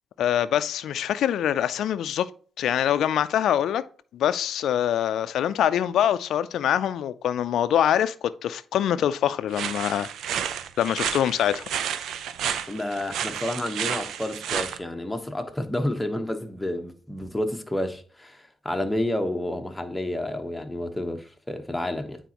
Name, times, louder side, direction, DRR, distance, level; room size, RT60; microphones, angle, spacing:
voice 1, 0.2-2.3 2.6-3.8 4.1-10.1 10.8-11.6, left 10 dB, 80° left, 0.4 m, -24 dB
sound 1, 9.5-14.8, right 9 dB, 80° right, 0.5 m, -31 dB
voice 2, 12.7-22.2, left 1 dB, 10° left, 1.1 m, -30 dB
9.1 x 4.2 x 2.9 m
cardioid pair, 80°, 0 cm